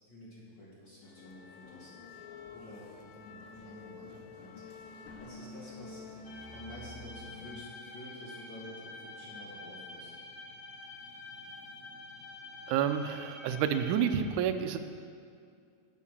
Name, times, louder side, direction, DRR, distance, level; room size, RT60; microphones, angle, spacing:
voice 1, 0.1-1.9 2.5-2.9 3.1-4.5 4.9-6.0 6.5-10.1, left 1 dB, 40° left, -6 dB, 1.8 m, -50 dB
sound 1, 1.0-7.5, left 3 dB, 85° left, 2.6 m, -49 dB
sound 2, 6.2-14.1, left 2 dB, 60° left, 2.3 m, -48 dB
voice 2, 12.7-14.8, right 8 dB, 85° right, 7 dB, 1.7 m, -29 dB
8.5 x 7.9 x 7.2 m, 2.3 s
omnidirectional pair, 4.1 m